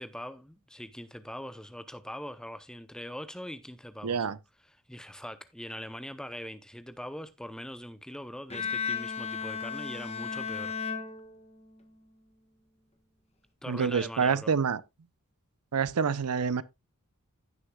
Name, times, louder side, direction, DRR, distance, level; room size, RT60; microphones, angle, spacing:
voice 1, 0.0-4.3 4.7-10.7 13.6-14.5, equal, 5° left, 0.7 m, -42 dB
voice 2, 4.0-4.4 13.7-14.8 15.7-16.6, right 6 dB, 90° right, 0.6 m, -27 dB
Bowed string instrument, 8.5-11.8, left 6 dB, 30° left, 1.3 m, -35 dB
15.5 x 6.5 x 2.3 m
head